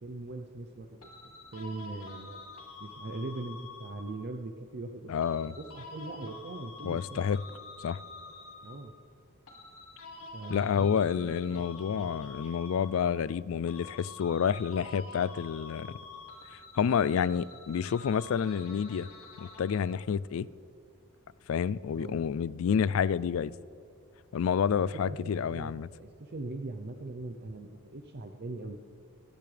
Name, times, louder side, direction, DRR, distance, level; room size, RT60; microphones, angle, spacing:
voice 1, 0.0-1.1 1.5-2.4 2.8-5.1 5.4-7.2 8.6-8.9 10.3-11.6 11.9-12.1 21.9-22.2 24.9-28.8, right 2 dB, 50° right, 0.6 m, -41 dB
sound 1, 1.0-4.4 5.2-9.0 9.5-13.4 13.7-20.0, left 3 dB, 80° left, 2.2 m, -48 dB
voice 2, 5.1-5.5 6.8-7.4 7.8-8.0 10.5-16.0 16.8-19.1 19.4-20.5 21.5-23.5 24.3-25.9, left 7 dB, 65° left, 0.3 m, -29 dB
22.5 x 10.5 x 3.4 m
head